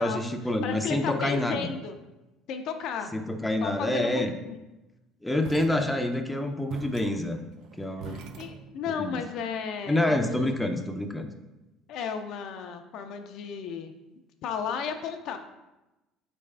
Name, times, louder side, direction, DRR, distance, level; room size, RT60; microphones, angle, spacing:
voice 1, 0.0-1.7 3.1-4.3 5.2-7.4 7.8-8.2 8.9-9.2 9.9-11.3, left 1 dB, 5° left, 5 dB, 0.5 m, -27 dB
voice 2, 0.6-2.0 2.5-3.1 3.6-4.6 8.1-10.7 11.9-13.9 14.4-15.4, left 6 dB, 65° left, 6 dB, 0.4 m, -34 dB
sound 1, 5.4-6.3 6.7-9.1, right 6 dB, 65° right, 0.4 m, -44 dB
4.1 x 3.4 x 3.3 m, 1.0 s
supercardioid pair, 85°, 0 cm